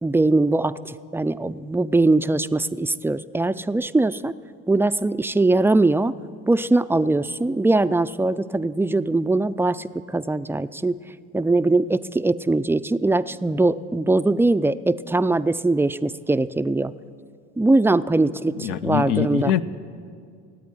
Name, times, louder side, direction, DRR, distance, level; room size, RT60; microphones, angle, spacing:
voice 1, 0.0-4.3 4.7-6.1 6.5-11.0 11.3-16.9 17.6-19.5, right 2 dB, 5° right, 13 dB, 0.3 m, -21 dB
voice 2, 18.6-19.6, left 10 dB, 85° left, 10 dB, 0.7 m, -23 dB
17.0 x 8.5 x 9.7 m, 2.2 s
supercardioid pair, 70°, 38 cm